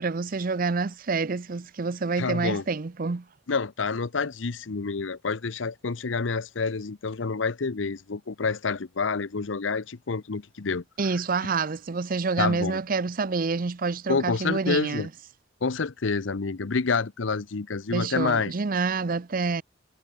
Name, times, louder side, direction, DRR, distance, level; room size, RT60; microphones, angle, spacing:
voice 1, 0.0-3.2 11.0-15.1 17.9-19.6, right 4 dB, 45° right, 0.6 m, -27 dB
voice 2, 2.2-2.6 3.5-11.2 12.4-12.8 14.1-15.1 15.6-18.5, left 4 dB, 85° left, 0.8 m, -28 dB
head